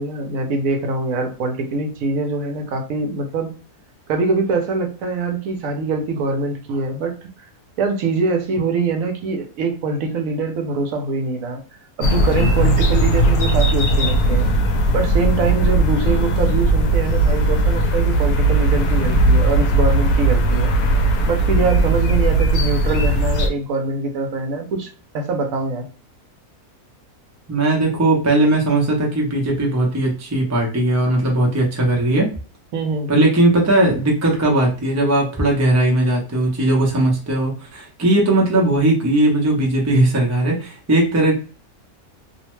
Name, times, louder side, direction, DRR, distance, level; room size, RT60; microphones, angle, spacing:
voice 1, 0.0-3.5 4.1-7.3 7.8-11.6 12.0-14.5 14.9-20.7 21.3-25.9 32.7-33.1, right 4 dB, 70° right, 4 dB, 1.0 m, -23 dB
sound 1, 12.0-23.5, right 1 dB, 80° left, 1.1 m, -17 dB
voice 2, 27.5-32.3 33.1-41.4, right 1 dB, 25° right, -1 dB, 0.3 m, -18 dB
2.7 x 2.1 x 3.0 m, 0.37 s
omnidirectional pair, 1.6 m